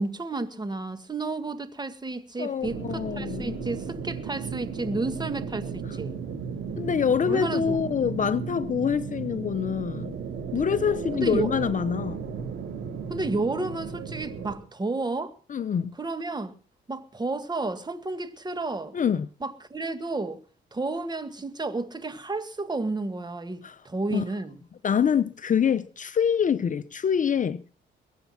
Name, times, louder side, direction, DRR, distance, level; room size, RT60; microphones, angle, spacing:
voice 1, 0.0-6.2 7.3-7.8 11.1-11.5 13.1-15.3 16.0-16.5 16.9-19.0 19.4-20.4 20.7-24.6, right 3 dB, 20° right, 1.9 m, -31 dB
voice 2, 2.4-3.7 6.7-10.1 10.5-12.2 15.5-15.9 18.9-19.3 23.6-23.8 24.1-24.2 24.8-27.7, left 7 dB, 40° left, 0.7 m, -25 dB
sound 1, 2.6-14.5, right 6 dB, 75° right, 4.7 m, -35 dB
22.0 x 8.3 x 5.9 m
cardioid pair, 90°, 20 cm